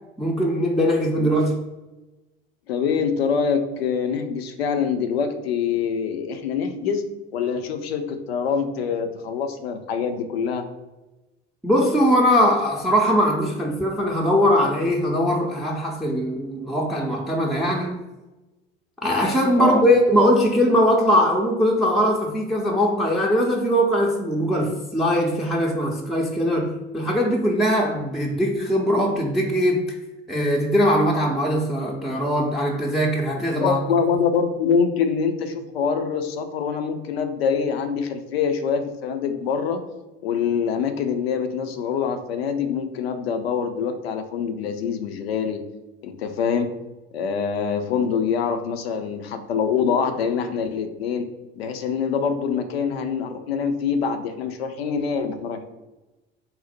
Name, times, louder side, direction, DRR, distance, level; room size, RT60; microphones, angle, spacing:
voice 1, 0.2-1.6 11.6-18.0 19.0-30.0 30.3-33.8, equal, ahead, -2 dB, 0.5 m, -21 dB
voice 2, 2.7-7.0 7.3-10.6 19.5-19.8 33.6-39.8 40.2-45.6 46.0-46.7 47.1-51.3 51.6-55.6, left 6 dB, 75° left, 7 dB, 0.6 m, -25 dB
4.0 x 2.1 x 4.2 m, 1.1 s
figure-of-eight pair, 60°, 31 cm